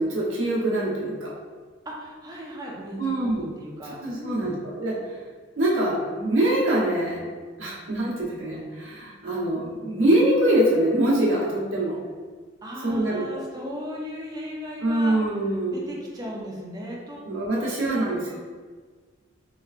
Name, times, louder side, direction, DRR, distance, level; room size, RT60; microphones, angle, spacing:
voice 1, 0.0-1.3 3.0-3.5 4.0-5.1 5.6-7.3 7.6-12.0 12.8-13.2 14.8-15.8 17.2-18.4, right 1 dB, 75° right, -5 dB, 0.9 m, -24 dB
voice 2, 1.9-4.6 12.6-15.2 15.7-18.4, equal, 20° right, -3 dB, 0.5 m, -37 dB
3.2 x 3.0 x 2.4 m, 1.5 s
head